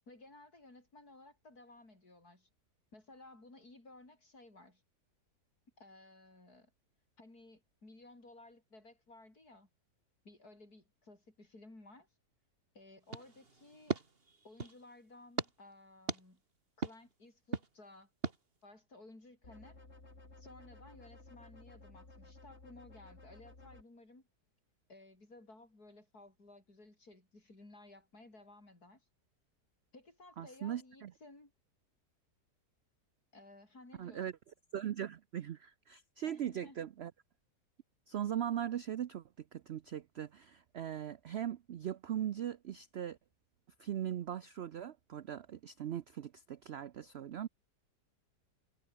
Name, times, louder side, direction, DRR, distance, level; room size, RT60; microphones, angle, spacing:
voice 1, 0.1-2.5 2.9-4.8 5.8-6.7 7.2-9.7 10.2-12.1 12.8-14.0 14.4-16.4 16.8-18.1 18.6-19.8 20.4-24.3 24.9-29.1 29.9-31.5 33.3-34.3 36.3-36.9, left 2 dB, 60° left, 7.1 m, -57 dB
sound 1, 13.1-14.8 15.4-15.5 16.1-16.2 16.8-17.0 17.5-17.7 18.2-18.4, right 3 dB, 35° right, 2.4 m, -38 dB
sound 2, 19.4-23.8, left 2 dB, 40° left, 4.2 m, -56 dB
voice 2, 30.4-31.1 34.0-34.3 34.7-37.1 38.1-39.2 39.5-43.2 43.8-47.5, right 10 dB, 75° right, 0.6 m, -39 dB
omnidirectional pair, 1.8 m